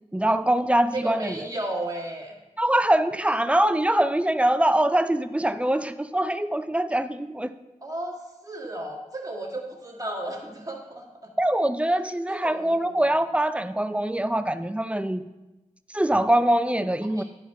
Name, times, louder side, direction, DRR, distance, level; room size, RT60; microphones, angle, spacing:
voice 1, 0.1-1.5 2.6-7.6 11.4-15.2 15.9-17.2, right 1 dB, 10° right, 11 dB, 0.4 m, -23 dB
voice 2, 0.9-2.4 7.8-8.2 8.4-11.1 12.3-12.8 17.1-17.2, right 1 dB, 25° right, -1 dB, 1.8 m, -33 dB
11.5 x 4.5 x 4.6 m, 1.0 s
wide cardioid pair, 60°, 13 cm